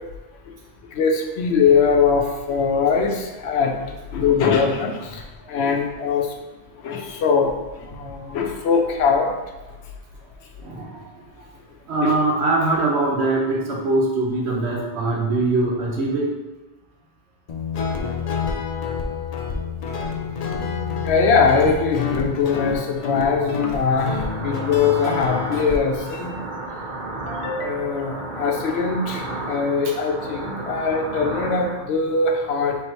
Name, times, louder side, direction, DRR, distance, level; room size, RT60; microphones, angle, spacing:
voice 1, 0.9-6.3 6.8-9.3 12.0-12.1 20.7-26.3 27.3-32.9, left 5 dB, 75° left, 2 dB, 0.8 m, -22 dB
voice 2, 10.6-11.1 11.9-16.3, right 2 dB, 75° right, -1 dB, 1.0 m, -22 dB
Guitar, 17.5-25.8, left 5 dB, 55° left, 0.4 m, -28 dB
sound 1, 23.8-31.8, right 2 dB, 50° right, 0.7 m, -32 dB
3.6 x 3.0 x 4.2 m, 1.1 s
omnidirectional pair, 1.1 m